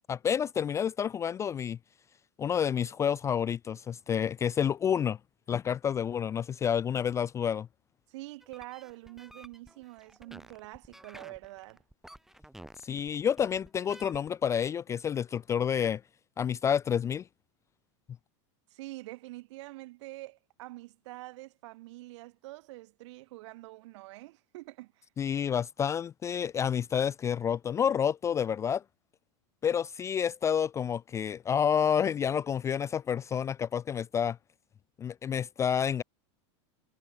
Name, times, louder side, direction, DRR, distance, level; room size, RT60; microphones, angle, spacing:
voice 1, 0.1-1.8 2.4-5.2 5.5-7.7 12.8-16.0 16.4-17.2 25.2-28.8 29.6-34.4 35.0-36.0, left 8 dB, 20° left, 0.4 m, -29 dB
voice 2, 8.1-11.8 18.7-25.1, right 19 dB, 65° right, 6.3 m, -46 dB
sound 1, 8.4-14.3, right 1 dB, ahead, 1.3 m, -52 dB
supercardioid pair, 140°, 16 cm